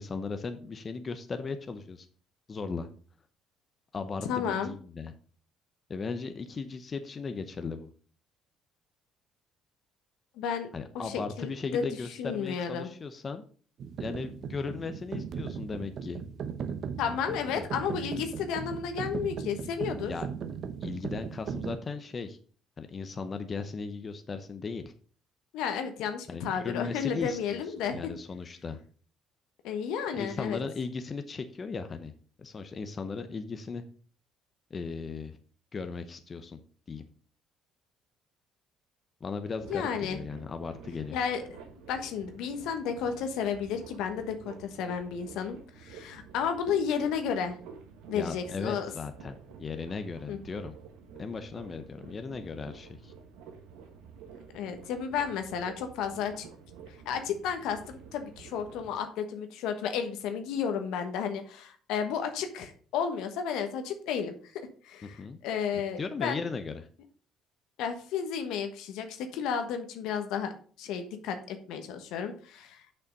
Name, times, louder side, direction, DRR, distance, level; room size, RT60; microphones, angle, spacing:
voice 1, 0.0-2.1 2.5-2.9 3.9-5.1 5.9-7.9 10.7-13.5 14.0-16.2 17.6-17.7 20.1-20.3 20.8-22.4 22.8-24.9 26.3-27.6 27.9-28.8 30.2-32.1 32.4-33.8 34.7-35.4 35.7-36.6 36.9-37.1 39.2-41.2 48.1-50.8 51.2-53.1 65.0-65.4 65.7-66.9, left 4 dB, 35° left, 8 dB, 0.8 m, -37 dB
voice 2, 4.2-4.7 10.4-10.7 10.9-11.8 12.2-12.9 17.0-20.1 25.5-28.1 29.6-30.6 39.7-40.2 41.1-47.6 48.1-48.9 50.3-50.4 54.5-56.4 57.0-66.4 67.8-70.5 70.8-72.8, left 7 dB, 75° left, 7 dB, 1.2 m, -32 dB
sound 1, 13.8-21.8, right 7 dB, 60° right, 0.9 m, -38 dB
sound 2, 39.5-59.0, right 6 dB, 85° right, 1.4 m, -50 dB
6.8 x 5.7 x 5.3 m, 0.43 s
supercardioid pair, 75°, 0 cm